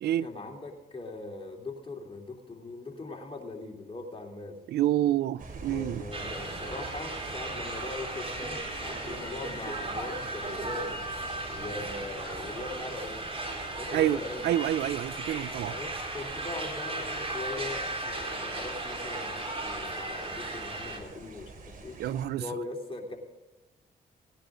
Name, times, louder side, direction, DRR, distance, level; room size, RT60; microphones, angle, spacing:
voice 1, 0.2-4.6 5.7-11.0 11.5-13.2 13.8-14.6 15.7-21.9 22.4-23.2, left 2 dB, 35° left, 3.2 m, -40 dB
voice 2, 4.7-6.0 13.9-15.8 22.0-22.4, right 12 dB, 80° right, 0.4 m, -28 dB
sound 1, 5.4-22.3, right 3 dB, 55° right, 3.0 m, -46 dB
sound 2, 6.1-21.0, right 2 dB, 35° right, 3.9 m, -36 dB
18.0 x 10.5 x 3.8 m
cardioid pair, 65°, 17 cm